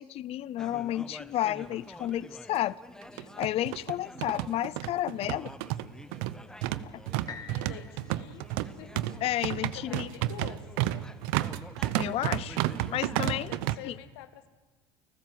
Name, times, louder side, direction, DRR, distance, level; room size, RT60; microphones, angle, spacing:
voice 1, 0.0-2.8 3.1-5.5 6.8-7.0 9.2-10.1 11.9-12.6 12.9-13.5 13.8-14.0, left 13 dB, 50° left, 0.6 m, -31 dB
sound 1, 0.6-13.3, left 1 dB, 5° left, 1.1 m, -49 dB
sound 2, 1.7-1.8 2.1-2.2 3.0-13.8, right 15 dB, 80° right, 0.8 m, -31 dB
sound 3, 7.3-11.2 11.8-11.9, left 6 dB, 30° left, 2.7 m, -50 dB
voice 2, 7.5-8.5 8.8-9.1 9.7-11.0 13.0-14.5, left 11 dB, 90° left, 1.7 m, -47 dB
29.5 x 15.0 x 7.7 m
supercardioid pair, 100°, 13 cm